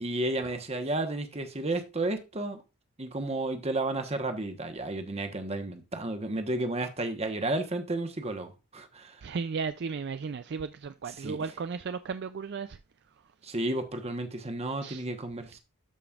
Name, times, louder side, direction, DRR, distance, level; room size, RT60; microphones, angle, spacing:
voice 1, 0.0-2.6 3.0-9.2 11.2-11.4 13.4-15.6, right 2 dB, 30° right, 1.1 m, -32 dB
voice 2, 9.2-12.8 14.8-15.0, right 5 dB, 50° right, 0.4 m, -35 dB
13.0 x 5.2 x 2.4 m
head